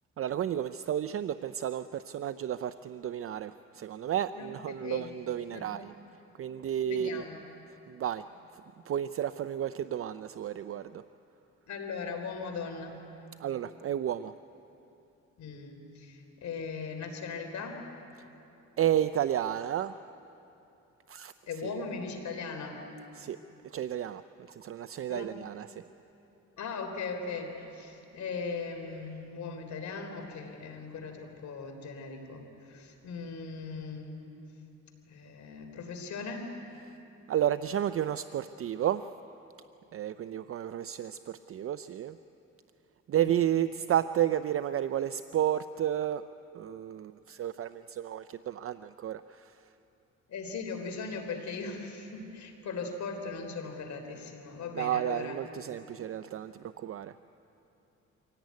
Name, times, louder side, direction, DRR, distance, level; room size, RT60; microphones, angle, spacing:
voice 1, 0.2-5.9 6.4-7.2 7.9-8.2 8.9-11.0 13.4-14.3 18.8-20.0 21.1-21.3 21.6-21.8 23.1-23.4 23.6-24.2 24.5-25.8 37.3-39.1 39.9-42.2 43.1-46.2 46.5-49.6 54.7-57.2, right 10 dB, 50° right, 13 dB, 0.5 m, -32 dB
voice 2, 6.9-7.5 11.7-13.0 15.4-17.8 21.5-22.8 25.1-25.3 26.6-34.3 35.1-36.5 50.3-55.4, left 4 dB, 70° left, 4 dB, 3.7 m, -39 dB
24.5 x 17.0 x 9.5 m, 2.9 s
cardioid pair, 90°, 30 cm